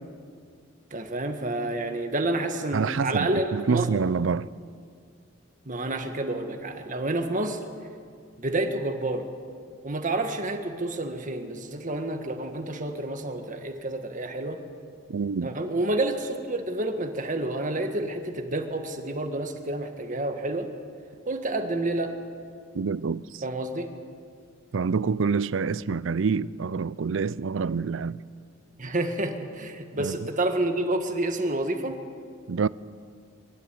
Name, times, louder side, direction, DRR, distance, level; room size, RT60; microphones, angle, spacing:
voice 1, 0.9-3.9 5.7-7.6 8.4-9.3 9.8-14.6 15.4-20.7 21.3-22.1 23.4-23.9 28.8-31.9, right 2 dB, 40° right, 1.7 m, -29 dB
voice 2, 2.7-4.5 15.1-15.5 22.7-23.4 24.7-28.2 30.0-30.2 32.5-32.7, right 5 dB, 75° right, 0.5 m, -27 dB
24.5 x 12.5 x 9.4 m
head